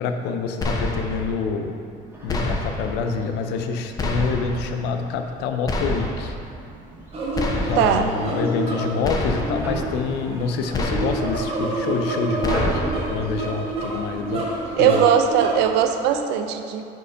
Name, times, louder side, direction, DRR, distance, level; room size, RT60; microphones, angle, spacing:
voice 1, 0.0-1.8 2.2-6.4 7.6-12.8 13.1-15.0, left 5 dB, 75° left, 6 dB, 0.6 m, -26 dB
sound 1, 0.6-1.3 2.3-3.0 4.0-4.7 5.7-6.4 7.3-8.0 9.0-9.7 10.7-11.4 12.4-13.1, left 1 dB, 20° left, 0.6 m, -27 dB
sound 2, 2.1-15.7, right 1 dB, 10° right, 1.0 m, -38 dB
sound 3, 7.1-16.2, right 2 dB, 35° right, 1.2 m, -29 dB
voice 2, 7.8-8.1 14.8-16.8, right 8 dB, 80° right, 7 dB, 0.5 m, -19 dB
5.0 x 4.6 x 4.9 m, 2.5 s
cardioid pair, 145°, 17 cm